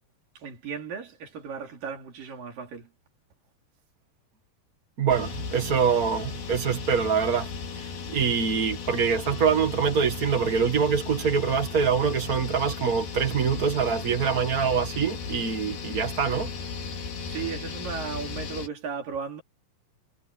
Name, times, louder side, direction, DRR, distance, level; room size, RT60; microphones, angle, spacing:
voice 1, 0.4-2.9 17.2-19.4, right 6 dB, 65° right, 4.9 m, -36 dB
voice 2, 5.0-7.5 7.7-16.5, right 6 dB, 45° right, 1.1 m, -25 dB
sound 1, 5.1-18.7, left 5 dB, 85° left, 5.2 m, -36 dB
omnidirectional pair, 4.2 m